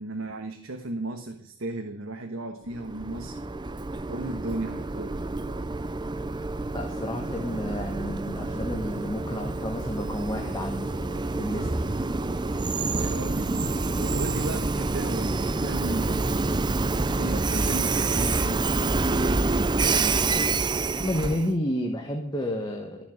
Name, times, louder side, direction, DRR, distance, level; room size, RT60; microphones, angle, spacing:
voice 1, 0.0-3.4 4.1-5.2 12.9-13.5 14.0-16.5 16.9-19.5, right 2 dB, 90° right, 5 dB, 1.4 m, -35 dB
Train, 2.7-21.5, right 3 dB, 20° right, 0.6 m, -27 dB
voice 2, 6.7-11.8 21.0-23.1, equal, 20° left, 2 dB, 1.5 m, -31 dB
14.0 x 7.1 x 9.3 m, 0.71 s
head